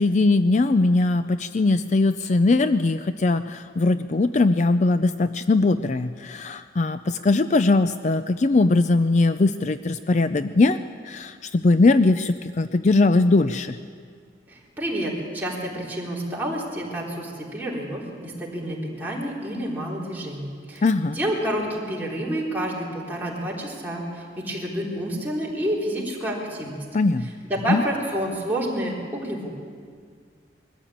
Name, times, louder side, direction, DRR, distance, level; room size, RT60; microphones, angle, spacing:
voice 1, 0.0-10.8 11.1-13.8 20.8-21.2 26.9-27.3 27.7-27.8, left 3 dB, 40° left, 11 dB, 0.4 m, -20 dB
voice 2, 14.8-24.0 24.4-26.8 27.4-29.5, right 1 dB, 10° right, -5 dB, 3.8 m, -29 dB
21.5 x 14.0 x 8.7 m, 2.1 s
head